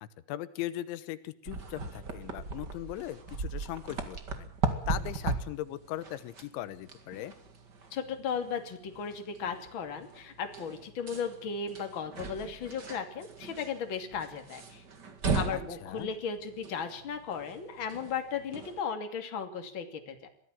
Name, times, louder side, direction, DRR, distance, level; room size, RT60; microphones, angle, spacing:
voice 1, 0.0-4.5 4.9-7.3 15.5-16.1, left 14 dB, 90° left, 15 dB, 3.4 m, -39 dB
sound 1, 1.4-18.8, right 4 dB, 40° right, 1.5 m, -38 dB
voice 2, 7.9-14.8 15.3-20.3, left 6 dB, 35° left, 6 dB, 2.7 m, -36 dB
23.0 x 15.5 x 7.6 m, 0.62 s
omnidirectional pair, 5.2 m